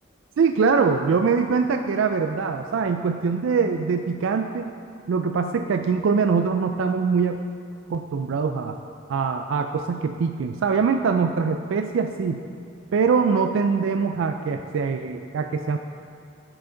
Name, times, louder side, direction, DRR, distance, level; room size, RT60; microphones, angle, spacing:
voice 1, 0.4-4.7 5.1-7.4 7.9-8.8 9.1-12.4 12.9-15.8, right 5 dB, 75° right, 6 dB, 0.3 m, -23 dB
11.0 x 6.0 x 3.8 m, 2.5 s
head